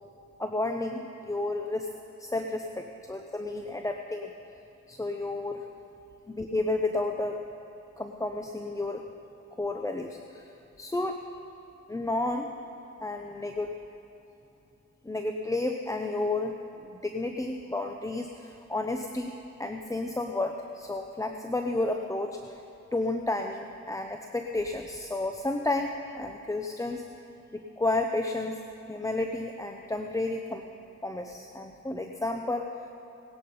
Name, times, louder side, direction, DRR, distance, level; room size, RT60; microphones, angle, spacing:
voice 1, 0.4-1.9 2.2-4.3 4.9-5.7 6.3-7.4 8.0-9.0 9.6-10.5 10.8-11.2 11.9-12.5 13.0-13.7 15.0-16.5 16.9-19.3 19.6-22.6 22.9-27.0 27.5-28.6 28.9-30.6 31.0-32.7, left 2 dB, 10° left, 4 dB, 0.7 m, -31 dB
18.5 x 10.5 x 5.5 m, 2.9 s
cardioid pair, 90°, 30 cm